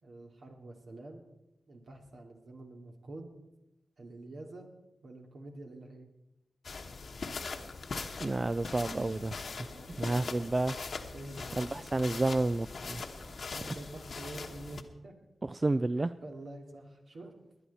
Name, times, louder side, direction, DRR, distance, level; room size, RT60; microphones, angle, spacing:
voice 1, 0.0-1.3 1.7-3.3 4.0-6.1 9.7-10.0 11.1-12.0 13.5-15.1 16.0-17.3, right 2 dB, 75° right, 2.6 m, -47 dB
sound 1, 6.6-14.8, left 4 dB, 70° left, 1.2 m, -41 dB
voice 2, 8.2-9.4 9.9-10.8 11.5-13.4 13.7-13.8 15.4-16.1, right 2 dB, 35° right, 0.4 m, -31 dB
20.5 x 10.0 x 4.2 m
cardioid pair, 55°, 0 cm